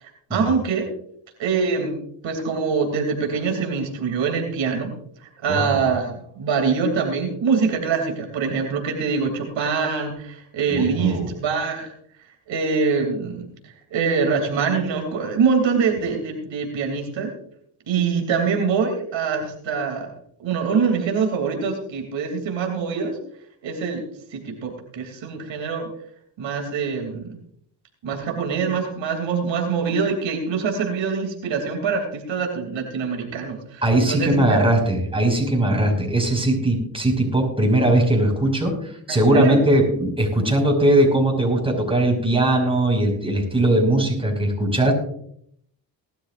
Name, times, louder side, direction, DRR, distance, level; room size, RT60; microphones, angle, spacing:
voice 1, 0.3-0.9 1.4-1.9 2.2-4.9 5.4-11.9 12.5-13.5 13.9-17.3 17.9-20.1 20.4-23.2 23.6-24.0 24.3-25.9 26.4-27.2 28.0-34.7 39.1-39.6, right 5 dB, 80° right, 3 dB, 3.0 m, -24 dB
voice 2, 5.5-5.8 10.7-11.3 33.8-44.9, right 1 dB, 10° right, 1 dB, 5.6 m, -20 dB
19.5 x 12.5 x 2.6 m, 0.67 s
cardioid pair, 70°, 45 cm